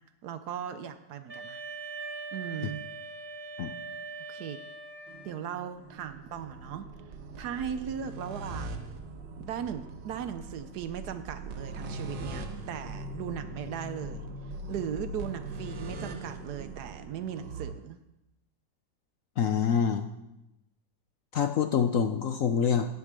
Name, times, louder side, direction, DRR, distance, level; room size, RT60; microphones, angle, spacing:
voice 1, 0.2-1.6 2.3-2.8 4.3-4.6 5.2-6.9 7.4-8.8 9.4-14.3 14.7-18.0, right 8 dB, 70° right, 10 dB, 1.1 m, -37 dB
Wind instrument woodwind instrument, 1.3-5.5, right 4 dB, 25° right, 1.9 m, -41 dB
sound 1, 5.1-17.7, right 2 dB, 85° right, 1.8 m, -41 dB
voice 2, 19.4-20.1 21.3-22.9, left 7 dB, 65° left, 7 dB, 0.8 m, -26 dB
8.5 x 8.0 x 7.4 m, 0.91 s
omnidirectional pair, 1.9 m